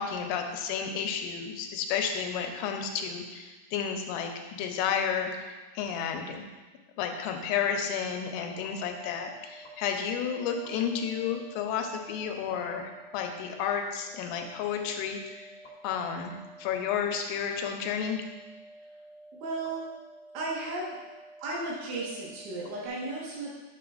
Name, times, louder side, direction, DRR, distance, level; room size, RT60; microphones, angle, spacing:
voice 1, 0.0-6.5 7.0-15.5 15.8-18.2, left 7 dB, 85° left, 4 dB, 3.2 m, -32 dB
sound 1, 8.1-22.9, right 1 dB, 55° left, 1.8 m, -51 dB
voice 2, 19.4-19.9 20.3-21.0 21.4-23.5, right 2 dB, 75° right, -4 dB, 3.6 m, -34 dB
9.8 x 6.9 x 2.5 m, 1.2 s
omnidirectional pair, 5.8 m